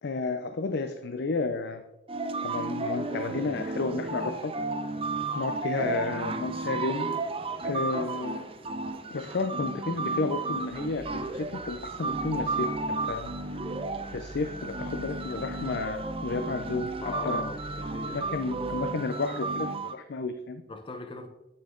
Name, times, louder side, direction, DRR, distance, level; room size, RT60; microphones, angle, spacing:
voice 1, 0.0-1.8 2.4-4.5 5.3-7.1 7.6-8.4 9.1-13.3 14.0-16.9 17.2-17.4 18.1-20.6, left 3 dB, 65° left, 8 dB, 0.5 m, -32 dB
sound 1, 2.1-19.9, right 3 dB, 30° right, 0.5 m, -33 dB
sound 2, 10.7-18.8, right 2 dB, 45° right, 1.0 m, -48 dB
voice 2, 16.9-18.3 20.7-21.3, left 3 dB, 30° left, 5 dB, 0.8 m, -40 dB
8.7 x 6.6 x 3.7 m, 0.93 s
head